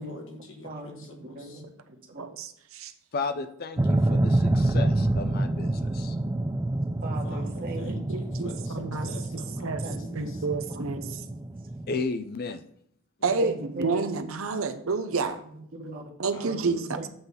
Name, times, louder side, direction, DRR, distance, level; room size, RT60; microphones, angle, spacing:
voice 1, 0.0-1.6 7.2-10.4 13.2-13.7 16.3-17.1, left 1 dB, 60° left, 3 dB, 1.5 m, -44 dB
voice 2, 0.6-2.2 7.0-8.0 8.3-8.4 8.8-8.9 9.8-10.2 11.0-11.2 13.4-14.1 15.5-16.0 16.5-17.1, right 2 dB, 40° right, 0 dB, 1.5 m, -39 dB
voice 3, 2.2-2.9 8.1-9.1 9.6-9.8 10.1-11.0 13.2-15.4 16.2-17.0, right 4 dB, 65° right, 9 dB, 0.7 m, -29 dB
voice 4, 3.1-6.2 11.9-12.6, left 4 dB, 45° left, 10 dB, 0.5 m, -33 dB
sound 1, 3.8-12.0, right 1 dB, 15° right, 0.3 m, -27 dB
7.8 x 4.0 x 6.8 m, 0.69 s
head